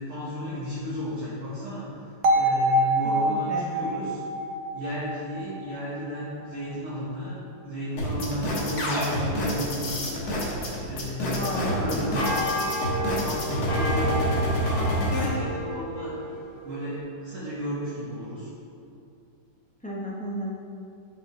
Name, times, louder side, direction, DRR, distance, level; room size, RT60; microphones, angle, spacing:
voice 1, 0.0-4.2 4.7-7.4 7.6-10.2 10.9-12.4 12.9-16.2 16.6-18.5, equal, 40° right, -10 dB, 1.8 m, -33 dB
sound 1, 2.2-6.2, right 1 dB, 70° right, 1.5 m, -25 dB
voice 2, 3.2-3.6 11.0-12.0 19.8-20.6, equal, 5° left, -5 dB, 0.6 m, -33 dB
sound 2, 8.0-15.3, equal, 55° left, 1.7 m, -27 dB
sound 3, 11.2-17.0, left 1 dB, 35° left, 1.4 m, -32 dB
11.0 x 5.5 x 3.3 m, 2.5 s
omnidirectional pair, 2.1 m